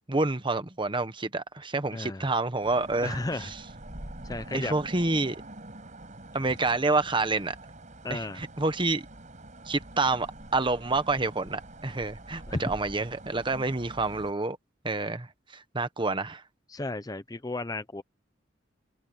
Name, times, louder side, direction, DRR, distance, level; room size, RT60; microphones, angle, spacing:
voice 1, 0.1-3.5 4.5-5.4 6.3-7.5 8.1-9.0 9.7-14.6 14.8-16.4, right 3 dB, 25° right, 1.2 m, -28 dB
voice 2, 1.9-2.3 3.0-3.5 4.2-4.7 8.0-8.4 12.5-12.6 16.7-18.0, left 2 dB, 20° left, 0.7 m, -33 dB
sound 1, 2.6-14.3, right 1 dB, 40° right, 5.5 m, -45 dB
head